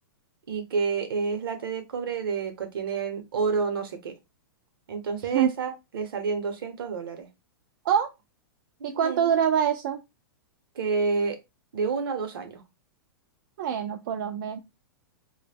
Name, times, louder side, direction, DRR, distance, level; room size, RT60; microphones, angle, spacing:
voice 1, 0.5-4.1 4.9-7.3 8.8-9.4 10.8-11.4 11.7-12.6, right 5 dB, 75° right, 0.8 m, -29 dB
voice 2, 8.8-10.0 13.6-14.6, right 8 dB, 60° right, 0.4 m, -25 dB
2.1 x 2.1 x 3.3 m
hypercardioid pair, 135°, 12 cm